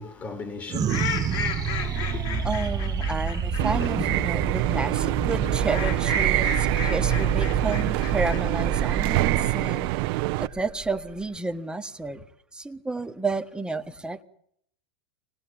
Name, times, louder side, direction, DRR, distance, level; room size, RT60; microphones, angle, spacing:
voice 1, 0.0-2.3, left 4 dB, 25° left, 2.7 m, -39 dB
sound 1, 0.7-11.4, right 6 dB, 25° right, 1.2 m, -28 dB
sound 2, 0.9-4.2 5.4-8.4, left 8 dB, 60° left, 7.8 m, -34 dB
voice 2, 2.4-9.9 10.4-12.2 12.5-14.2, right 3 dB, 5° right, 1.5 m, -31 dB
sound 3, 3.6-10.5, right 19 dB, 55° right, 0.9 m, -26 dB
25.5 x 20.0 x 8.9 m
hypercardioid pair, 120°, 14 cm